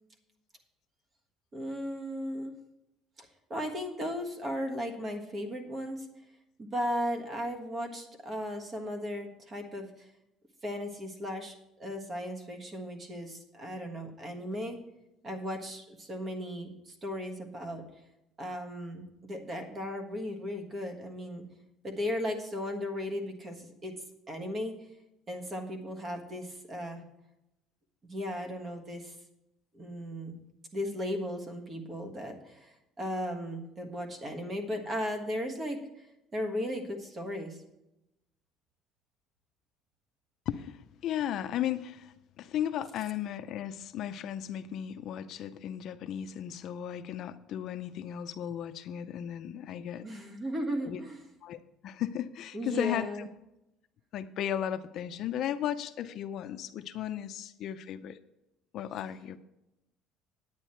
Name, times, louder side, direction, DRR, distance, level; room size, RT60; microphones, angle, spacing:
voice 1, 1.5-2.5 3.2-6.0 6.6-9.9 10.6-14.8 15.2-17.8 18.4-21.5 21.8-23.9 24.3-24.7 25.3-27.0 28.0-29.1 29.7-30.4 30.7-36.1 36.3-37.6 50.0-51.2 52.5-53.3, equal, 25° right, 5 dB, 1.5 m, -36 dB
voice 2, 40.5-50.1 50.8-51.0 51.4-53.3 54.1-58.2 58.7-59.4, left 10 dB, 50° left, 10 dB, 0.5 m, -35 dB
9.6 x 9.1 x 4.4 m, 0.90 s
cardioid pair, 150°, 0 cm